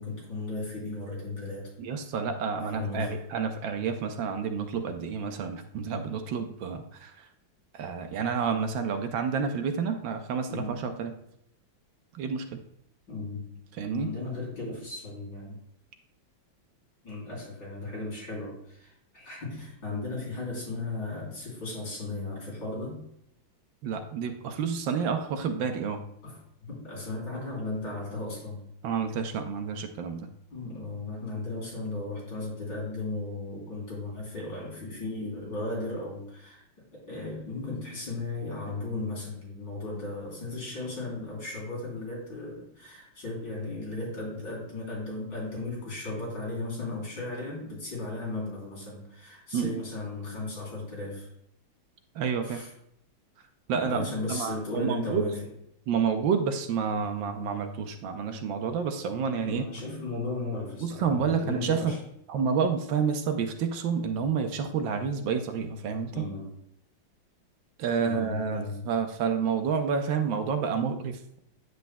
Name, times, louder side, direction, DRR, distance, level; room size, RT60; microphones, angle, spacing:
voice 1, 0.0-1.7 2.7-3.3 10.5-10.8 13.1-13.6 13.9-15.6 17.0-23.0 26.2-26.4 26.7-28.7 30.5-36.6 36.9-51.3 52.4-52.7 53.7-55.5 59.5-62.0 66.1-66.5 68.0-68.9, left 2 dB, 65° left, -4 dB, 4.2 m, -36 dB
voice 2, 1.8-7.3 7.7-11.2 12.1-12.6 13.7-14.1 23.8-26.0 28.8-30.3 49.5-49.8 52.1-52.6 53.7-55.3 55.9-59.7 60.8-61.9 62.3-66.3 67.8-71.4, right 6 dB, 75° right, 6 dB, 1.4 m, -29 dB
9.3 x 7.9 x 2.2 m, 0.74 s
omnidirectional pair, 2.1 m